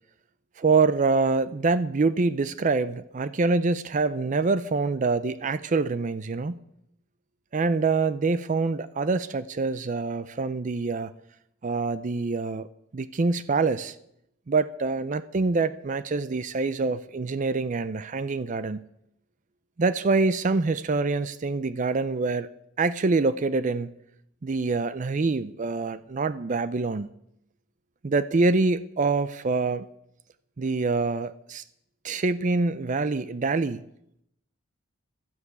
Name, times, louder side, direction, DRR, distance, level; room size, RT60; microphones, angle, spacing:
voice 1, 0.6-6.6 7.5-11.1 11.6-12.7 12.9-14.0 14.5-18.8 19.8-22.5 22.8-23.9 24.4-27.1 28.0-29.9 30.6-31.6 32.0-33.8, right 3 dB, 40° right, 14 dB, 0.4 m, -25 dB
12.0 x 10.0 x 8.2 m, 0.77 s
head